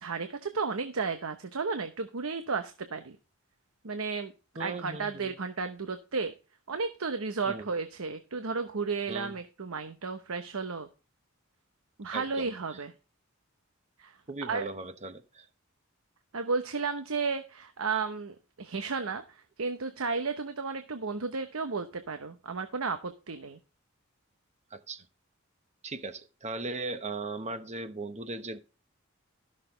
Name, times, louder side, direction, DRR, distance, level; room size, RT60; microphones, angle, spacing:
voice 1, 0.0-3.2 3.8-4.3 4.6-6.3 6.7-10.9 12.0-12.9 14.0-14.2 14.4-14.7 16.3-23.6, right 4 dB, 85° right, 0.9 m, -33 dB
voice 2, 4.6-5.3 7.5-7.7 9.1-9.3 12.1-12.5 14.3-15.5 24.7-25.0 25.8-28.6, right 3 dB, 35° right, 1.1 m, -38 dB
13.5 x 6.6 x 3.8 m
head